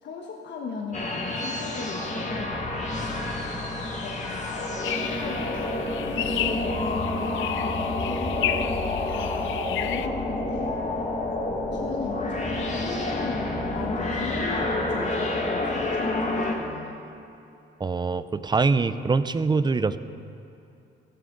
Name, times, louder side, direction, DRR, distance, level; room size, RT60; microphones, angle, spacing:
voice 1, 0.0-2.9 4.0-5.6 6.0-11.1 11.7-17.0, left 4 dB, 60° left, 0 dB, 1.2 m, -38 dB
sound 1, 0.9-16.5, left 2 dB, 35° left, 1.9 m, -29 dB
sound 2, 4.8-10.1, left 11 dB, 80° left, 0.6 m, -32 dB
voice 2, 17.8-20.0, right 4 dB, 20° right, 13 dB, 0.5 m, -24 dB
14.5 x 14.0 x 4.0 m, 2.7 s
cardioid pair, 90°, 20 cm